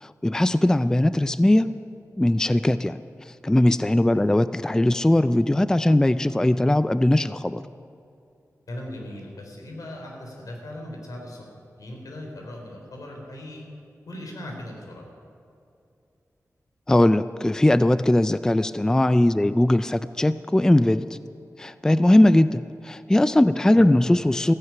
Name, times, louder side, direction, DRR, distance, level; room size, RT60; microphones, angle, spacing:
voice 1, 0.0-1.7 2.2-3.0 3.4-7.6 16.9-21.2 21.6-24.5, left 1 dB, 10° left, 13 dB, 0.3 m, -20 dB
voice 2, 8.7-11.5 11.8-13.6 14.1-15.1 23.8-23.9, left 1 dB, 85° left, 1 dB, 3.6 m, -38 dB
15.5 x 15.0 x 5.8 m, 2.6 s
wide cardioid pair, 105°, 6 cm